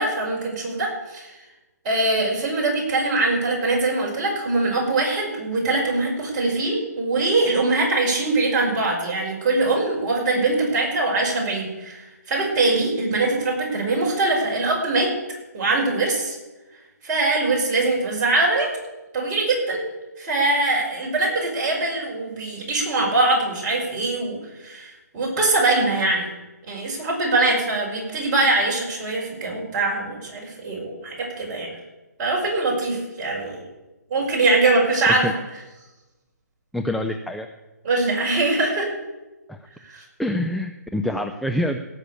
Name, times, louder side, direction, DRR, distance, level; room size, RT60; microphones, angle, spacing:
voice 1, 0.0-1.3 1.8-15.1 15.5-16.4 17.0-18.7 19.1-19.8 20.2-26.3 26.7-31.7 32.2-33.7 34.1-35.3 37.8-38.9 39.9-40.0, right 2 dB, 30° right, -3 dB, 5.5 m, -22 dB
voice 2, 36.7-37.5 39.5-39.6 40.2-41.8, left 1 dB, ahead, 5 dB, 0.4 m, -26 dB
17.0 x 6.7 x 8.4 m, 1.1 s
figure-of-eight pair, 145°, 9 cm